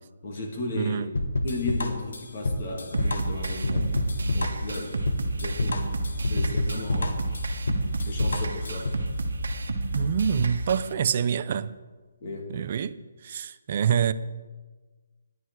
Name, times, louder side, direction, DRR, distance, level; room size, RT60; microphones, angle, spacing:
voice 1, 0.2-1.1 1.4-3.9 4.3-4.9 5.4-5.8 6.2-7.2 8.0-8.9 12.2-12.4, left 2 dB, 35° left, 2.3 m, -34 dB
voice 2, 0.8-1.1 9.9-11.7 12.5-13.0 13.2-14.1, right 8 dB, 35° right, 0.4 m, -26 dB
sound 1, 1.2-9.1, left 2 dB, 75° left, 1.3 m, -29 dB
sound 2, 2.9-10.9, right 1 dB, 80° right, 1.3 m, -30 dB
11.5 x 11.0 x 4.7 m
hypercardioid pair, 175°, 0 cm